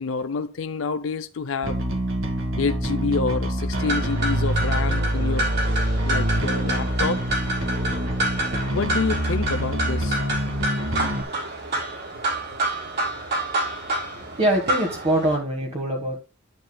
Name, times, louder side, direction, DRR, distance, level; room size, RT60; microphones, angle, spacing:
voice 1, 0.0-1.8 2.6-5.5 6.0-7.2 8.7-10.2, left 4 dB, 75° left, 0.5 m, -28 dB
Bass guitar, 1.6-11.2, right 1 dB, 75° right, 1.7 m, -25 dB
sound 1, 3.7-15.4, right 1 dB, 55° right, 5.9 m, -28 dB
voice 2, 14.1-16.2, right 1 dB, 30° right, 1.6 m, -24 dB
10.5 x 9.6 x 2.3 m
head